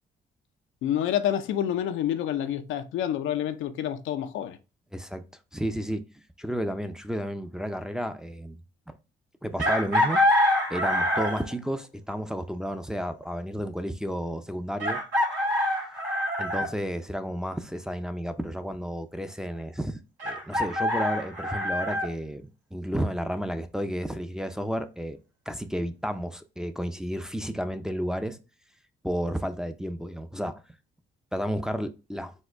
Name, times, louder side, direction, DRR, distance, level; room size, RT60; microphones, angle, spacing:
voice 1, 0.8-4.6, left 10 dB, 80° left, 0.5 m, -28 dB
voice 2, 4.9-5.2 5.5-6.0 6.4-8.6 8.9-9.0 9.4-10.2 10.7-15.0 16.4-22.4 22.7-25.2 25.5-28.4 29.0-30.6 31.3-32.3, equal, 5° right, 0.5 m, -32 dB
Chicken rooster, 9.6-11.5 13.2-13.3 14.8-16.7 20.2-22.1, left 1 dB, 85° right, 2.2 m, -25 dB
4.3 x 2.3 x 4.4 m
cardioid pair, 90°, 20 cm